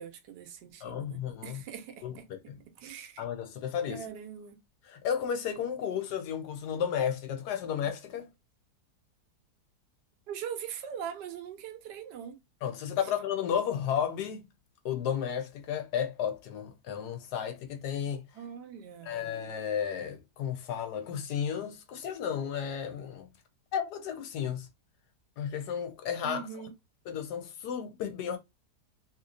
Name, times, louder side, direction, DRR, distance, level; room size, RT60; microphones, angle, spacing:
voice 1, 0.0-2.2 2.8-3.2 3.9-4.6 7.7-7.8 10.3-12.4 18.3-19.3 26.2-26.7, right 8 dB, 85° right, 1.3 m, -42 dB
voice 2, 0.8-1.6 2.0-2.6 3.2-4.1 4.8-8.3 12.6-14.4 14.8-18.2 19.0-23.3 23.7-24.7 25.4-26.5 27.1-28.4, left 8 dB, 75° left, 1.2 m, -33 dB
3.0 x 2.9 x 2.4 m
omnidirectional pair, 1.8 m